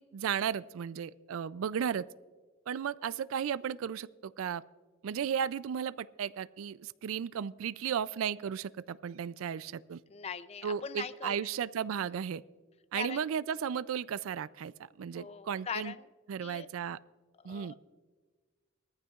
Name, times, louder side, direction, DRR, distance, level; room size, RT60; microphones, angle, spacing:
voice 1, 0.0-2.1 2.7-4.6 5.0-10.0 10.6-12.4 12.9-15.9 16.3-17.0 17.4-17.7, right 8 dB, 90° right, 18 dB, 0.4 m, -35 dB
voice 2, 10.1-11.5 12.9-13.3 15.1-16.1 16.4-16.7 17.4-17.7, left 6 dB, 30° left, 13 dB, 0.4 m, -41 dB
20.0 x 14.5 x 2.4 m, 1.4 s
head